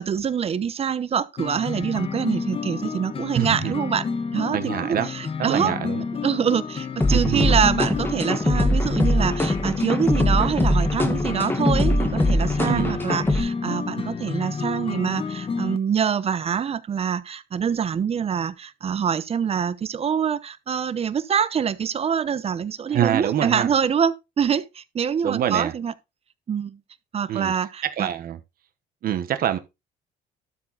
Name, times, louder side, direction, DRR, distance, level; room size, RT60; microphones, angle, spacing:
voice 1, 0.0-4.0 4.3-5.7 6.2-25.9 26.5-26.8 27.1-28.1, right 7 dB, 35° right, 0.9 m, -25 dB
sound 1, 1.4-15.8, left 5 dB, 35° left, 1.3 m, -30 dB
voice 2, 3.3-3.7 4.5-5.1 5.4-6.0 7.1-7.7 12.6-13.0 22.9-23.7 25.2-25.7 27.3-27.5 27.8-28.4 29.0-29.6, right 10 dB, 60° right, 1.3 m, -25 dB
sound 2, 7.0-13.4, left 1 dB, 10° left, 1.9 m, -22 dB
12.5 x 4.7 x 4.1 m
cardioid pair, 110°, 17 cm